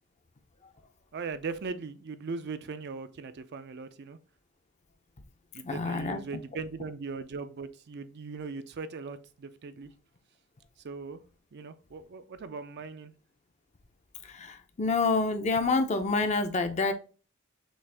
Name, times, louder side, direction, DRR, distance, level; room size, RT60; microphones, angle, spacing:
voice 1, 1.1-4.2 5.5-9.9 10.8-11.2 11.5-13.1, right 4 dB, 50° right, 0.4 m, -39 dB
voice 2, 5.6-6.4 14.2-16.9, left 3 dB, 30° left, 0.5 m, -28 dB
6.2 x 2.5 x 3.4 m
head